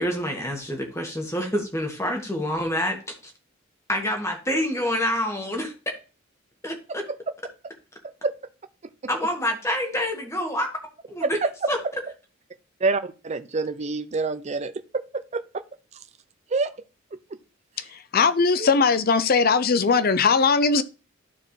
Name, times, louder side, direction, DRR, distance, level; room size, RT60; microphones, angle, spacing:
voice 1, 0.0-3.3 3.9-5.7 6.6-7.0 9.1-10.7 11.1-11.4 11.7-11.8, equal, 15° left, 1.6 m, -27 dB
voice 2, 12.8-15.6 16.5-16.7 17.1-17.2 18.6-18.7, right 3 dB, 35° right, 0.5 m, -27 dB
voice 3, 17.8-20.8, left 5 dB, 45° left, 0.5 m, -20 dB
12.5 x 4.4 x 3.2 m
head